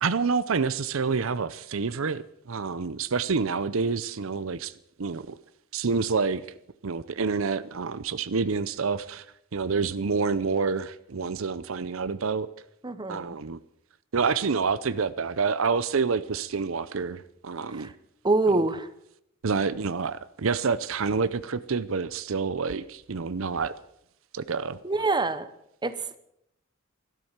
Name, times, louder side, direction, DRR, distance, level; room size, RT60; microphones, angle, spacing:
voice 1, 0.0-4.7 5.0-5.4 5.7-6.4 6.8-9.3 9.5-12.5 13.1-13.6 14.1-17.9 18.5-18.7 19.4-23.7 24.3-24.8, right 5 dB, 70° right, 0.6 m, -28 dB
voice 2, 12.8-13.4 17.8-17.9 18.2-18.9 24.8-25.5 25.8-26.1, right 3 dB, 20° right, 0.9 m, -25 dB
13.5 x 12.5 x 7.3 m
head